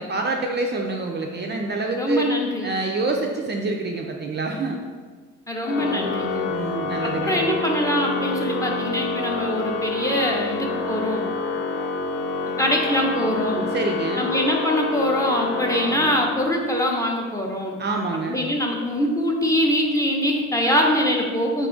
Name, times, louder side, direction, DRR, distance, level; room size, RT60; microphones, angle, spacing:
voice 1, 0.0-2.3 2.6-4.8 6.5-7.4 13.7-14.3 17.8-18.4, right 3 dB, 35° right, 1 dB, 0.4 m, -26 dB
voice 2, 2.0-2.7 5.5-6.5 7.0-11.2 12.6-13.7 14.2-17.8 18.3-21.7, equal, 10° left, 0 dB, 0.6 m, -23 dB
Organ, 5.6-16.6, left 3 dB, 85° left, 0.5 m, -27 dB
4.1 x 2.3 x 3.8 m, 1.5 s
cardioid pair, 90°, 30 cm